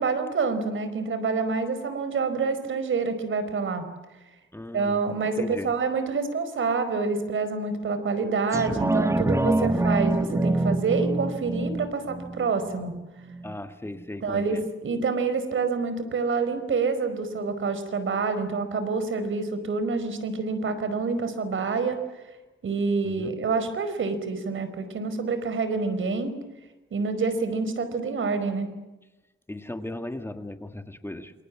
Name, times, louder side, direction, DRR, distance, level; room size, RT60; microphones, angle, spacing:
voice 1, 0.0-3.8 4.7-12.9 14.2-22.0 22.6-26.3 26.9-28.7, right 4 dB, 80° right, 10 dB, 4.9 m, -27 dB
voice 2, 4.5-5.0 5.3-5.7 13.4-14.6 23.0-23.3 29.5-31.3, left 1 dB, 10° left, 7 dB, 1.9 m, -37 dB
sound 1, 8.5-13.6 14.0-14.1, right 2 dB, 15° right, 1.2 m, -26 dB
28.0 x 27.5 x 7.5 m, 1.1 s
wide cardioid pair, 125°, 20 cm